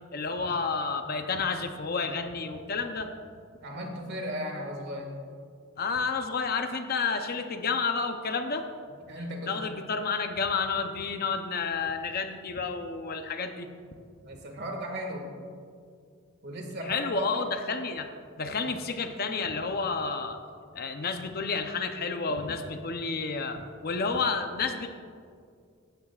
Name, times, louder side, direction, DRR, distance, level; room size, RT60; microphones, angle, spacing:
voice 1, 0.1-3.1 5.8-8.7 9.5-13.7 16.9-18.1 18.4-20.4 20.7-24.9, left 4 dB, 45° left, 6 dB, 0.7 m, -30 dB
voice 2, 3.6-5.1 9.1-9.7 14.2-15.3 16.4-17.4, equal, 50° right, 2 dB, 1.9 m, -36 dB
16.0 x 12.5 x 2.4 m, 2.2 s
head